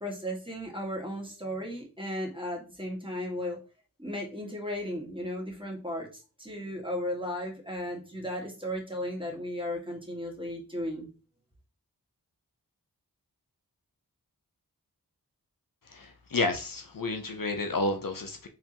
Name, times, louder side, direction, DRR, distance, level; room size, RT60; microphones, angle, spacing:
voice 1, 0.0-3.6 4.0-6.1 6.4-11.1, equal, 15° right, 1.9 m, -35 dB
voice 2, 15.9-18.5, left 2 dB, 60° left, 0.7 m, -31 dB
4.7 x 3.5 x 2.9 m
wide cardioid pair, 45°, 38 cm